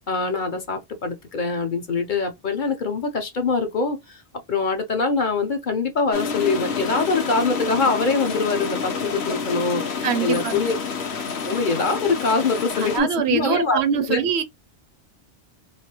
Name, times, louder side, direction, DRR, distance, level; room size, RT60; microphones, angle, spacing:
voice 1, 0.1-4.2 4.5-9.8 10.2-10.8 11.4-13.8 14.1-14.2, left 4 dB, 50° left, 0.8 m, -23 dB
sound 1, 6.1-13.0, left 5 dB, 70° left, 1.1 m, -28 dB
voice 2, 10.0-10.7 12.9-14.4, right 8 dB, 70° right, 0.8 m, -23 dB
3.3 x 2.7 x 2.8 m
omnidirectional pair, 1.2 m